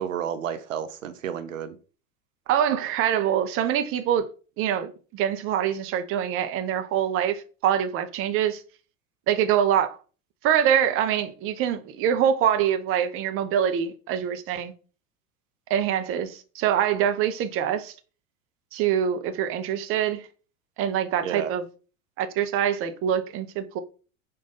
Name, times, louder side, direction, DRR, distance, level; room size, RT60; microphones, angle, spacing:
voice 1, 0.0-1.8 21.2-21.5, right 8 dB, 75° right, 0.7 m, -31 dB
voice 2, 2.5-4.3 4.6-8.6 9.3-10.0 10.4-14.7 15.7-17.9 18.7-20.2 20.8-21.6 22.2-23.8, right 9 dB, 35° right, 0.7 m, -24 dB
5.3 x 2.5 x 3.8 m
figure-of-eight pair, 80°, 39 cm